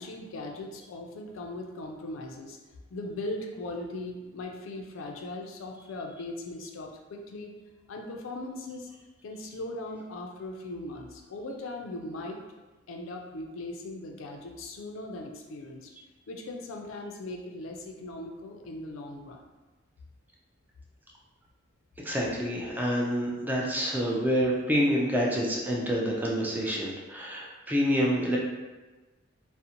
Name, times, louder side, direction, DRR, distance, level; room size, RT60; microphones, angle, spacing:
voice 1, 0.0-2.6 2.9-7.5 7.9-8.9 9.2-12.4 12.9-15.9 16.3-19.5, left 2 dB, 75° left, 2 dB, 0.4 m, -39 dB
voice 2, 22.0-28.4, equal, 10° right, -3 dB, 0.3 m, -27 dB
2.5 x 2.0 x 2.8 m, 1.2 s
head